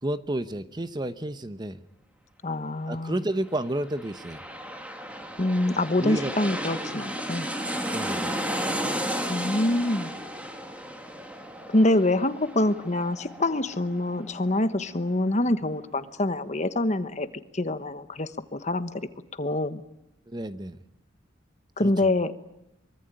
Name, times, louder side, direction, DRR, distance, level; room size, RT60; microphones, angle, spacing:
voice 1, 0.0-1.8 2.9-4.4 6.0-6.3 7.8-8.3 20.3-20.8 21.8-22.1, right 1 dB, 25° right, 12 dB, 0.9 m, -31 dB
voice 2, 2.4-3.1 5.4-7.5 9.3-10.1 11.7-17.3 17.5-19.0 19.4-19.8 21.8-22.3, left 1 dB, 40° left, 11 dB, 1.2 m, -25 dB
sound 1, 3.7-15.0 15.4-15.5, equal, 5° right, 2.4 m, -34 dB
24.0 x 24.0 x 9.0 m, 0.84 s
head